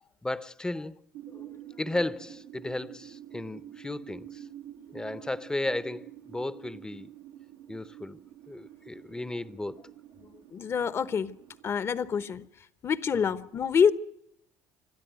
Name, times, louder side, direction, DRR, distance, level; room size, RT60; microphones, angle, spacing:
voice 1, 0.2-1.0 1.8-4.4 4.9-7.1 7.7-8.2 8.5-9.8 13.1-13.3, left 2 dB, 10° left, 0.9 m, -34 dB
sound 1, 1.1-12.5, right 12 dB, 85° right, 1.6 m, -48 dB
voice 2, 10.5-11.4 11.6-12.5 12.8-13.9, left 7 dB, 35° left, 1.0 m, -26 dB
27.0 x 12.5 x 9.3 m
supercardioid pair, 100°, 7 cm